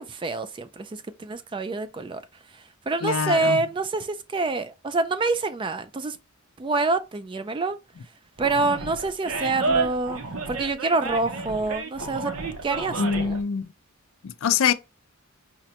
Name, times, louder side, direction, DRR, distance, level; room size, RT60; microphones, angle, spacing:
voice 1, 0.0-2.2 2.5-6.2 6.6-7.8 8.4-10.2 10.5-12.3 12.6-13.4, right 3 dB, 25° right, 0.3 m, -27 dB
voice 2, 3.0-3.6 13.0-13.7 14.2-14.7, left 7 dB, 75° left, 0.4 m, -24 dB
Animal, 8.4-13.4, right 3 dB, 75° right, 0.7 m, -30 dB
4.9 x 2.2 x 2.8 m
head